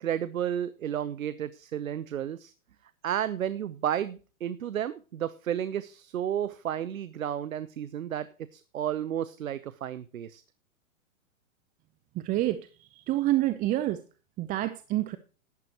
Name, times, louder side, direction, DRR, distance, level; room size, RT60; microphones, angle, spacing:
voice 1, 0.0-2.5 3.0-8.3 8.5-10.4, right 10 dB, 75° right, 15 dB, 0.9 m, -32 dB
voice 2, 12.2-12.7 12.9-14.0 14.4-15.2, right 15 dB, 20° right, 12 dB, 0.6 m, -27 dB
13.0 x 11.5 x 3.0 m, 0.34 s
hypercardioid pair, 115°, 41 cm